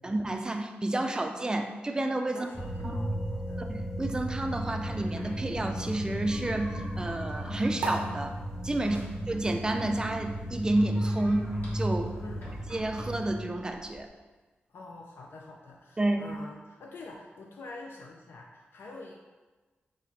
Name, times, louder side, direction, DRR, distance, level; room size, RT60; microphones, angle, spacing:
voice 1, 0.0-2.5 2.8-2.9 3.6-8.3 8.6-9.0 9.3-12.1 12.7-14.1 16.0-16.3, right 1 dB, 20° right, 5 dB, 0.4 m, -30 dB
voice 2, 2.3-3.6 8.8-9.0 12.2-12.5 14.7-19.1, left 3 dB, 70° left, 0 dB, 0.4 m, -46 dB
sound 1, 2.5-13.4, right 1 dB, 5° right, 0.8 m, -35 dB
sound 2, 4.8-14.1, equal, 55° left, 1.5 m, -51 dB
sound 3, 7.8-14.6, right 2 dB, 90° right, 0.7 m, -42 dB
4.0 x 3.1 x 4.1 m, 1.3 s
wide cardioid pair, 105°, 4 cm